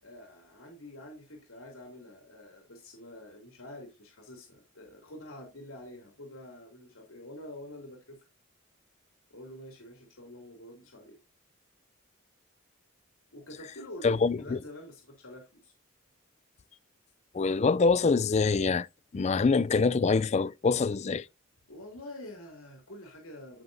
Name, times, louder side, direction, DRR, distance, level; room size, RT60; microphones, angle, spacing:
voice 1, 0.0-8.2 9.3-11.2 13.3-15.7 21.7-23.6, left 1 dB, 85° left, 2.6 m, -47 dB
voice 2, 14.0-14.6 17.3-18.9 19.1-21.3, left 4 dB, 30° left, 0.3 m, -25 dB
14.5 x 5.6 x 2.6 m
head